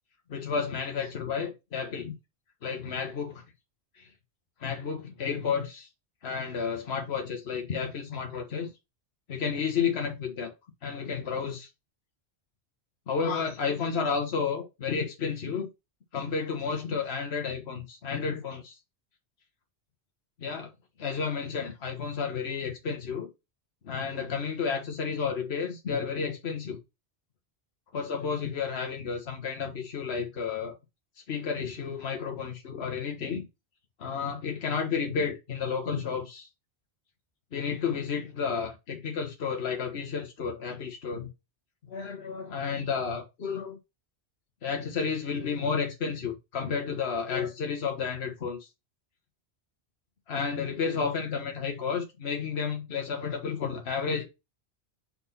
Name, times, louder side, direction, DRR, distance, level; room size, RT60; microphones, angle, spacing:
voice 1, 0.3-2.1 2.6-3.4 4.0-4.1 4.6-5.9 6.2-8.7 9.3-10.5 10.8-11.7 13.1-15.7 16.1-18.8 20.4-20.7 21.0-23.3 23.8-26.8 27.9-30.8 31.3-33.5 34.0-36.5 37.5-41.3 41.9-43.8 44.6-48.6 50.3-54.2, left 6 dB, 70° left, 1.4 m, -31 dB
4.5 x 4.1 x 5.6 m
omnidirectional pair, 1.1 m